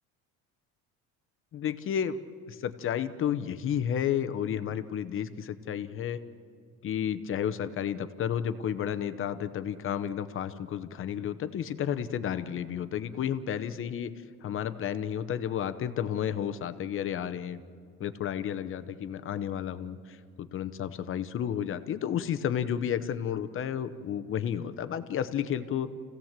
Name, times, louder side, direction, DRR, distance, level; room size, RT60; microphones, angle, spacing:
voice 1, 1.5-2.2 2.5-6.2 6.8-14.1 14.4-17.6 18.0-25.9, left 9 dB, 40° left, 12 dB, 0.8 m, -32 dB
28.5 x 16.5 x 7.4 m, 2.1 s
cardioid pair, 165°, 33 cm